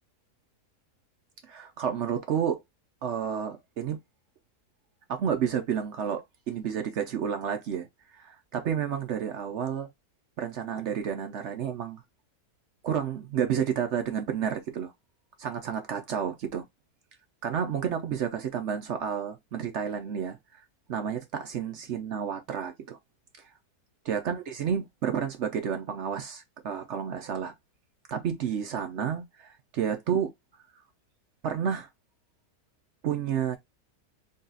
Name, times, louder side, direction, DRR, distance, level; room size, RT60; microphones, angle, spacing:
voice 1, 1.5-2.6 3.0-4.0 5.1-7.9 8.1-9.9 10.4-12.0 12.8-14.9 15.4-16.6 17.4-20.6 20.9-23.0 24.0-27.5 28.1-30.3 31.4-31.9 33.0-33.6, right 8 dB, 65° right, 0.7 m, -30 dB
3.9 x 2.3 x 3.8 m
omnidirectional pair, 1.7 m